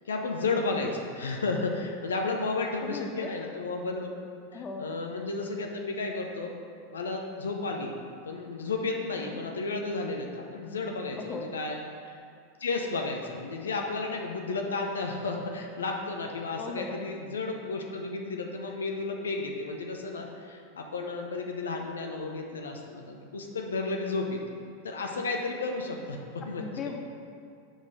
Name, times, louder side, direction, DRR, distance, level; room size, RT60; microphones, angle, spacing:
voice 1, 0.1-4.1 4.5-6.5 6.9-7.9 8.2-11.8 12.1-12.2 12.6-24.4 24.8-26.6, left 3 dB, 80° left, 2 dB, 0.7 m, -33 dB
voice 2, 2.6-3.4 4.5-4.9 9.2-9.5 11.2-11.5 16.6-17.0 26.6-27.0, left 4 dB, 30° left, 3 dB, 0.8 m, -38 dB
6.3 x 4.7 x 5.3 m, 2.3 s
hypercardioid pair, 90°, 0 cm